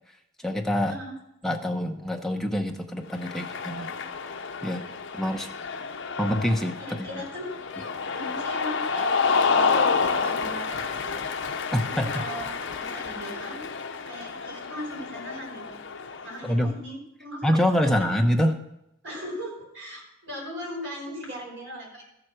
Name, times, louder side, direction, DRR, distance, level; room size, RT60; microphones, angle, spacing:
voice 1, 0.4-1.0 1.4-3.9 4.6-4.8 5.1-5.5 6.2-7.1 11.7-12.2 16.4-16.8 17.4-18.6, equal, ahead, 2 dB, 0.8 m, -25 dB
Cheering, 3.1-16.6, left 5 dB, 60° left, 0.7 m, -29 dB
voice 2, 6.8-7.5 8.1-11.1 11.8-13.6 14.0-15.8 16.2-18.1 19.0-22.0, equal, 60° right, -2 dB, 5.5 m, -39 dB
14.0 x 7.7 x 6.3 m, 0.84 s
head